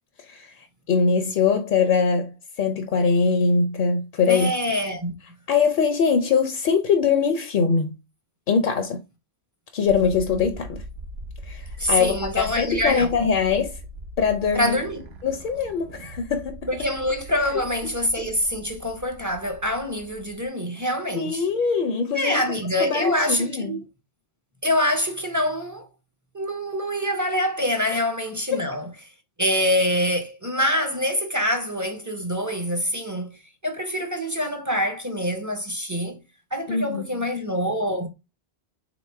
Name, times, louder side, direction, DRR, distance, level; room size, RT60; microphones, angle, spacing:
voice 1, 0.3-4.5 5.5-8.0 8.5-9.0 9.7-10.8 11.4-13.8 14.2-14.8 15.2-16.7 21.2-22.4 22.8-23.7 28.5-28.6 36.7-37.0, left 5 dB, 60° left, 0.6 m, -22 dB
voice 2, 4.3-5.1 11.8-13.1 14.5-15.1 16.7-21.5 22.1-23.8 24.6-25.9 26.3-28.9 29.4-36.2 36.5-38.1, left 1 dB, 25° right, 0.5 m, -25 dB
sound 1, 9.9-20.5, right 1 dB, 80° right, 1.0 m, -40 dB
3.9 x 3.0 x 3.2 m
omnidirectional pair, 1.1 m